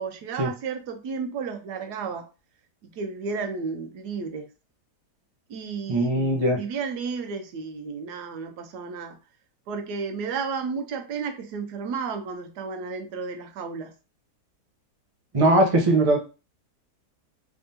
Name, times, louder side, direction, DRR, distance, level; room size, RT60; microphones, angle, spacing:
voice 1, 0.0-2.3 2.8-4.5 5.5-9.2 9.7-13.9, right 5 dB, 80° right, 7 dB, 1.2 m, -33 dB
voice 2, 5.9-6.6 15.3-16.2, right 1 dB, 35° right, 1 dB, 0.6 m, -20 dB
3.6 x 3.4 x 2.7 m, 0.32 s
omnidirectional pair, 1.8 m